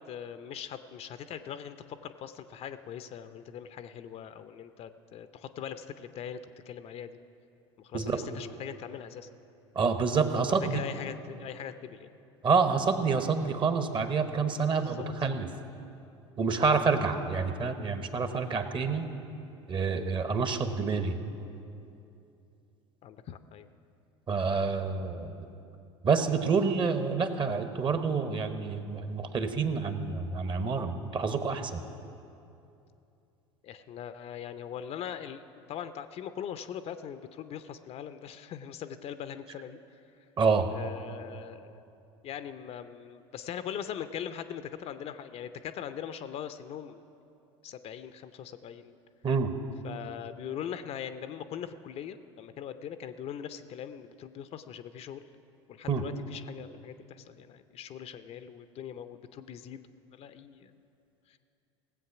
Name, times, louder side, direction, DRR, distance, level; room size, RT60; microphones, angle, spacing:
voice 1, 0.1-7.2 7.8-9.3 10.3-12.1 14.7-15.1 23.0-23.7 33.6-35.4 35.7-39.8 40.7-41.8 42.2-47.0 47.6-49.0 49.8-55.2 55.7-60.7 61.3-61.4, left 9 dB, 40° left, 11 dB, 0.5 m, -41 dB
voice 2, 9.7-10.8 12.4-15.5 16.4-19.1 19.7-21.2 24.3-25.3 26.0-31.8 40.4-40.7 49.2-49.5 55.9-56.0, right 5 dB, 30° right, 8 dB, 1.0 m, -28 dB
17.5 x 7.8 x 5.9 m, 2.7 s
hypercardioid pair, 75°, 16 cm